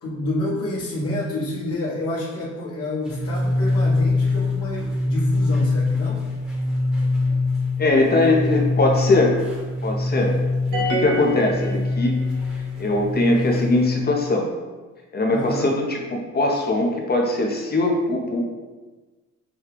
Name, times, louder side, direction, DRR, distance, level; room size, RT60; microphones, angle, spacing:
voice 1, 0.0-6.3 15.3-15.7, left 1 dB, 50° left, -6 dB, 1.4 m, -28 dB
sound 1, 3.0-14.0, left 2 dB, ahead, 1.1 m, -23 dB
voice 2, 7.8-9.4 9.8-10.3 10.7-12.2 12.8-14.5 15.1-18.4, left 2 dB, 30° left, 1 dB, 0.8 m, -21 dB
sound 2, 10.7-12.4, right 1 dB, 85° right, 0.8 m, -27 dB
6.2 x 2.3 x 3.4 m, 1.3 s
cardioid pair, 90°, 30 cm